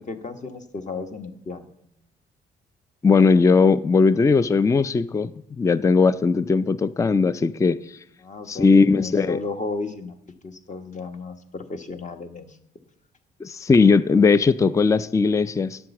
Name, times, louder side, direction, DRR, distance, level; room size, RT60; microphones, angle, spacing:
voice 1, 0.1-1.8 8.2-10.2 10.4-12.6, left 3 dB, 35° left, 1.2 m, -34 dB
voice 2, 3.0-7.8 8.5-9.4 13.4-15.8, left 4 dB, 15° left, 0.4 m, -18 dB
9.8 x 7.7 x 7.0 m
cardioid pair, 90°, 20 cm